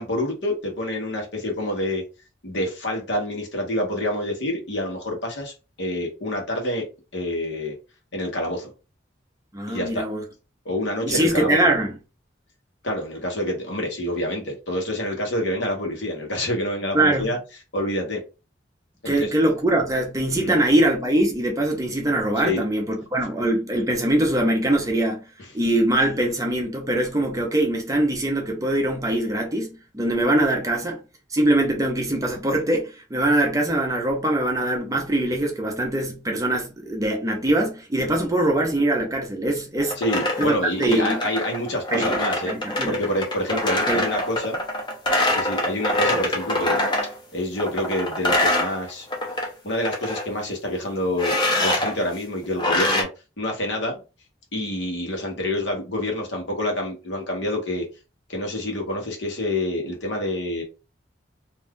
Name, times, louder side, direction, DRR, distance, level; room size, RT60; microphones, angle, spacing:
voice 1, 0.0-2.0 2.4-6.8 7.1-7.7 8.1-8.7 9.7-10.0 10.6-11.6 12.8-17.4 17.7-18.2 19.0-19.3 20.4-20.5 22.4-22.6 40.0-42.5 42.9-44.6 45.3-49.1 49.6-53.1 53.4-53.9 54.5-57.8 58.3-60.6, left 1 dB, 70° left, 1.1 m, -27 dB
voice 2, 9.5-10.2 11.0-11.9 16.9-17.3 19.1-25.2 25.5-31.0 31.3-40.0 40.4-41.2 41.9-42.2 42.4-42.9 43.5-43.6 43.9-44.0, right 1 dB, 15° right, 0.6 m, -22 dB
sound 1, 39.8-47.1 47.6-49.5 49.7-50.2 51.2-51.9 52.6-53.0, left 1 dB, 25° left, 0.7 m, -24 dB
2.6 x 2.3 x 3.5 m
head